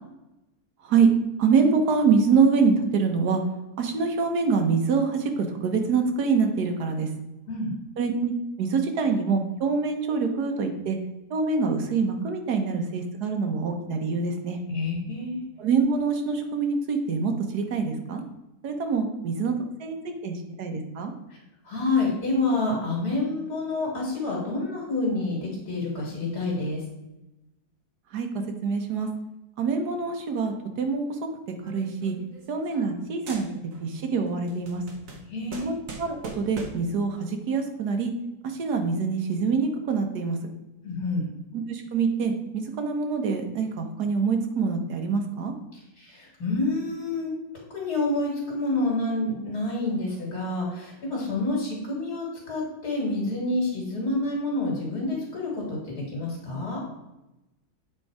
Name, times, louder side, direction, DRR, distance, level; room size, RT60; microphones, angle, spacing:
voice 1, 1.4-3.4 3.8-7.1 8.0-8.3 8.6-11.0 11.3-14.6 15.6-18.2 18.6-19.5 19.8-21.1 28.1-28.3 28.6-29.1 29.6-31.0 31.7-32.2 32.5-33.5 33.8-34.8 35.6-38.1 38.4-40.4 41.5-45.5, right 5 dB, 80° right, 5 dB, 1.6 m, -25 dB
voice 2, 14.7-15.4 21.6-26.8 35.3-35.7 40.8-41.3 46.0-47.3 47.7-56.8, left 2 dB, 75° left, -4 dB, 2.6 m, -28 dB
sound 1, 31.6-33.0 33.3-33.9 34.3-37.0, right 4 dB, 60° right, 1.6 m, -41 dB
8.3 x 4.4 x 4.7 m, 0.97 s
omnidirectional pair, 1.7 m